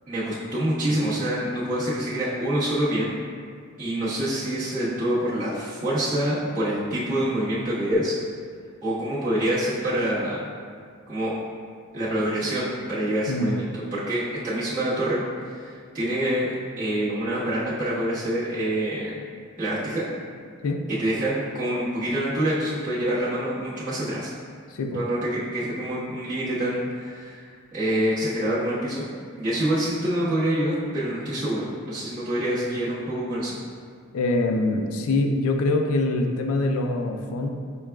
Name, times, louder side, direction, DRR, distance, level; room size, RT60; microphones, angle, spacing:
voice 1, 0.1-3.1 3.8-8.1 8.8-10.4 11.1-11.3 11.9-16.5 16.8-19.1 19.6-20.1 20.9-24.3 24.9-27.4 27.7-29.1 29.4-33.6, right 1 dB, 40° right, -11 dB, 1.4 m, -26 dB
voice 2, 34.1-37.5, left 2 dB, 70° left, 3 dB, 0.4 m, -24 dB
6.5 x 2.3 x 2.3 m, 2.1 s
head